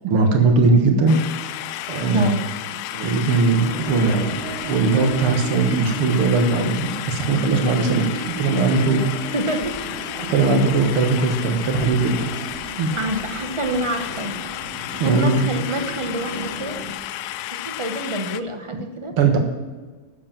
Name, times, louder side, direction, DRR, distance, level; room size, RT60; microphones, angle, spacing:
voice 1, 0.0-1.2 1.9-2.3 2.9-4.3 4.6-9.1 10.2-12.2 12.8-12.9 15.0-15.5 19.2-19.4, right 3 dB, 90° right, 4 dB, 2.5 m, -19 dB
sound 1, 1.1-18.4, left 13 dB, 85° left, 1.5 m, -32 dB
sound 2, 3.3-16.9, right 3 dB, 70° right, 3.1 m, -35 dB
voice 2, 9.3-9.7 12.9-14.3 15.0-16.7 17.5-19.1, right 1 dB, 30° right, 6 dB, 0.6 m, -27 dB
12.0 x 7.8 x 7.4 m, 1.3 s
omnidirectional pair, 2.3 m